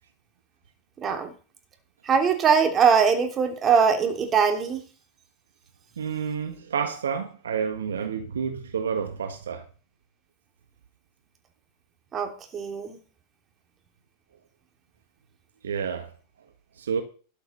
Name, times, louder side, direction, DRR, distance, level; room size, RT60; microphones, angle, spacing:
voice 1, 1.0-1.3 2.0-4.8 12.1-13.0, right 6 dB, 30° right, 3.2 m, -22 dB
voice 2, 6.0-9.7 15.6-16.1 16.8-17.0, right 6 dB, 80° right, 1.5 m, -29 dB
12.5 x 6.5 x 6.7 m
hypercardioid pair, 95°, 0 cm